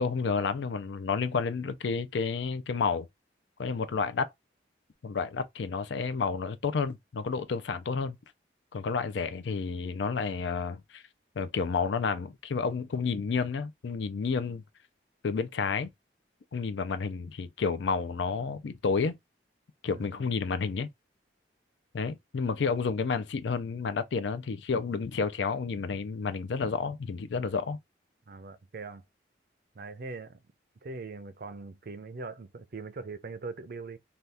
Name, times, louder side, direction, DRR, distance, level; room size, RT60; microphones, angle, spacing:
voice 1, 0.0-3.1 3.6-4.3 5.0-8.2 8.7-11.0 11.4-14.6 15.2-15.9 16.5-19.2 19.8-20.9 21.9-27.8, left 5 dB, 75° left, 0.4 m, -30 dB
voice 2, 19.9-20.3 28.3-29.0 29.7-30.4 30.8-34.0, right 3 dB, 50° right, 0.4 m, -41 dB
2.7 x 2.3 x 3.3 m
head